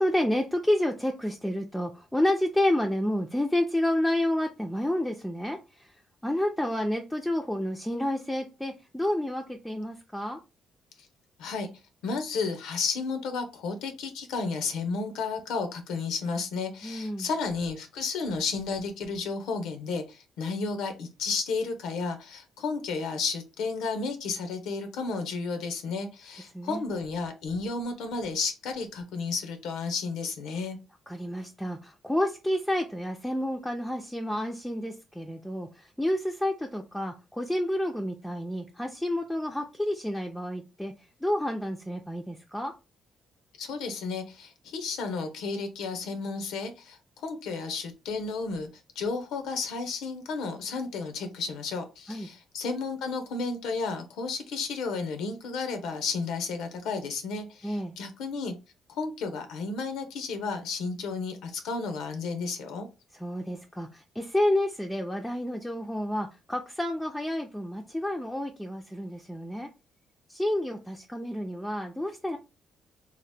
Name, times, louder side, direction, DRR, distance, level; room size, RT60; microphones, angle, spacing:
voice 1, 0.0-5.9 6.2-10.4 16.8-17.3 26.5-26.8 31.1-42.7 52.1-52.3 57.6-58.0 63.1-69.7 70.3-72.4, left 1 dB, 5° left, 0.4 m, -30 dB
voice 2, 12.0-30.8 43.6-48.7 49.0-58.5 58.9-62.9, left 4 dB, 90° left, 0.6 m, -32 dB
2.8 x 2.0 x 3.3 m
cardioid pair, 90°, 0 cm